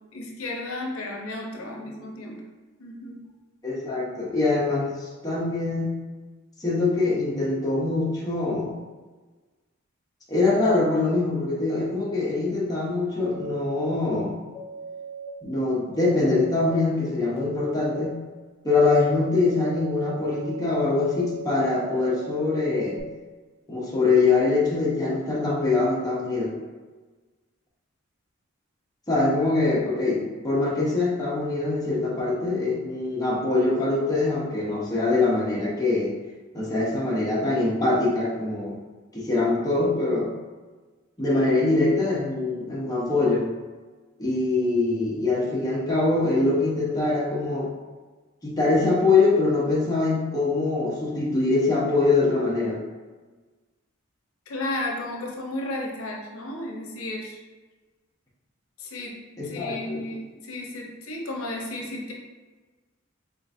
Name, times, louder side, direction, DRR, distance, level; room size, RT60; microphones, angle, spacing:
voice 1, 0.1-2.4 2.8-3.2 54.5-57.4 58.8-62.1, left 1 dB, 85° left, -1 dB, 0.7 m, -33 dB
voice 2, 3.6-6.0 6.6-8.7 10.3-14.3 15.4-18.2 18.6-23.0 23.7-26.5 29.1-36.1 36.5-38.8 39.1-40.3 41.2-43.5 44.2-47.7 48.4-52.8 59.4-60.0, left 3 dB, 20° left, -6 dB, 0.9 m, -23 dB
sound 1, 13.2-13.9 14.5-15.3 16.1-16.7 17.3-18.1 18.7-23.0, right 5 dB, 10° right, 0.8 m, -38 dB
3.8 x 3.7 x 2.6 m, 1.3 s
head